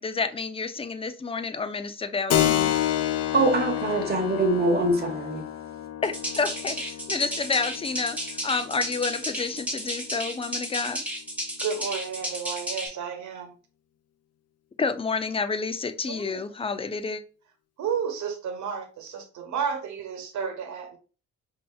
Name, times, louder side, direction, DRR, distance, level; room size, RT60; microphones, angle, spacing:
voice 1, 0.0-2.7 6.0-8.2 8.4-11.0 14.8-17.2, left 4 dB, 20° left, 0.4 m, -29 dB
Keyboard (musical), 2.3-10.5, left 11 dB, 55° left, 0.7 m, -30 dB
voice 2, 3.3-5.5, right 2 dB, 35° right, 1.1 m, -23 dB
sound 1, 6.0-12.9, equal, 5° right, 1.8 m, -33 dB
voice 3, 11.6-13.5 16.1-16.4 17.8-21.0, right 6 dB, 70° right, 1.1 m, -32 dB
5.3 x 2.8 x 2.3 m
cardioid pair, 90°, 30 cm